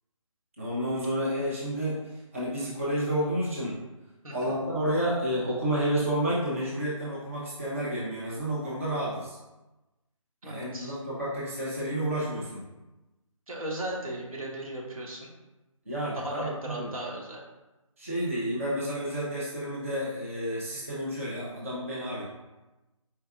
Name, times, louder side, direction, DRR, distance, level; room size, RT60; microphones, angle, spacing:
voice 1, 0.6-3.8 4.3-9.4 10.4-12.6 15.9-16.9 18.0-22.2, equal, 25° right, -7 dB, 0.6 m, -30 dB
voice 2, 10.4-10.9 13.5-15.3 16.1-17.4, right 1 dB, 80° right, -2 dB, 1.1 m, -36 dB
4.4 x 2.3 x 3.5 m, 1.1 s
hypercardioid pair, 175°, 18 cm